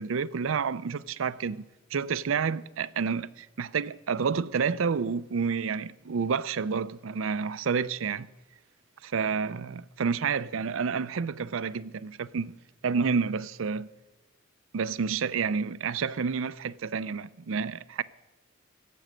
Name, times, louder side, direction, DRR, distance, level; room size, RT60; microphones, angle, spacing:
voice 1, 0.0-1.6 1.9-8.3 9.0-12.5 12.8-13.9 14.7-18.0, right 5 dB, 70° right, 0.5 m, -29 dB
16.5 x 7.7 x 7.6 m
head